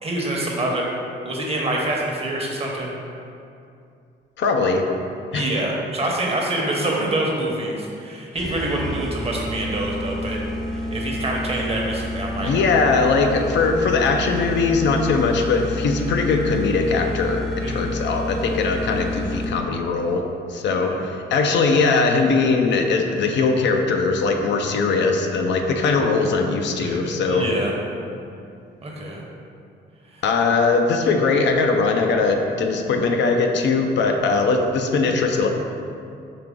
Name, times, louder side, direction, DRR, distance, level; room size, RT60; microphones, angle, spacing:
voice 1, 0.0-0.8 1.2-2.9 5.3-10.4 10.7-12.6 17.6-17.9 20.8-21.0 26.8-27.0 27.2-27.7 28.8-29.2, right 1 dB, 30° right, -2 dB, 0.9 m, -26 dB
voice 2, 4.4-4.8 5.3-5.5 12.4-20.2 20.5-27.5 30.2-35.5, left 4 dB, 65° left, 3 dB, 0.5 m, -20 dB
sound 1, 8.4-19.8, left 1 dB, ahead, 0.5 m, -29 dB
5.0 x 2.9 x 3.6 m, 2.5 s
cardioid pair, 90°, 20 cm